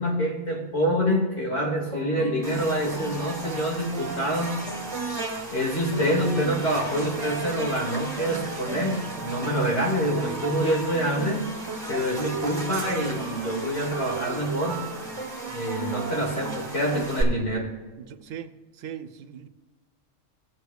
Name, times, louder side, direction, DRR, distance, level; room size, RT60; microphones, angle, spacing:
voice 1, 0.0-4.6 5.5-11.5 11.9-14.9 15.5-17.7, equal, 55° left, -2 dB, 2.4 m, -26 dB
sound 1, 1.7-17.1, right 4 dB, 65° right, 1.1 m, -37 dB
Buzz, 2.4-17.2, right 2 dB, 20° right, 1.7 m, -37 dB
voice 2, 18.0-19.5, right 9 dB, 85° right, 10 dB, 1.0 m, -40 dB
16.5 x 8.0 x 2.3 m, 1.4 s
omnidirectional pair, 1.3 m